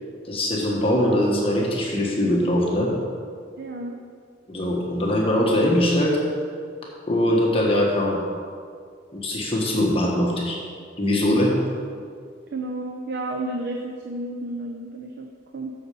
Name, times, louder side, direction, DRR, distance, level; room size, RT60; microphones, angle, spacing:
voice 1, 0.2-2.9 4.5-6.2 7.1-8.2 9.1-10.6 11.0-11.5, left 1 dB, 30° left, -3 dB, 1.4 m, -21 dB
voice 2, 3.6-4.0 12.5-15.7, right 2 dB, 55° right, 2 dB, 0.7 m, -32 dB
8.1 x 6.8 x 6.9 m, 2.1 s
head